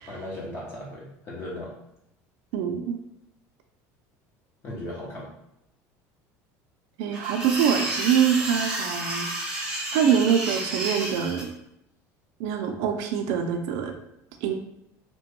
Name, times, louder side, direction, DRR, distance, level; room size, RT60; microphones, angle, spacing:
voice 1, 0.1-1.7 4.6-5.3, left 1 dB, 35° left, -3 dB, 0.7 m, -37 dB
voice 2, 2.5-3.0 7.0-9.3 9.9-11.5 12.4-13.9 14.4-14.5, right 8 dB, 70° right, 5 dB, 0.4 m, -24 dB
sound 1, 7.1-11.4, right 2 dB, 10° right, 0.6 m, -31 dB
2.9 x 2.2 x 2.8 m, 0.81 s
cardioid pair, 140°, 8 cm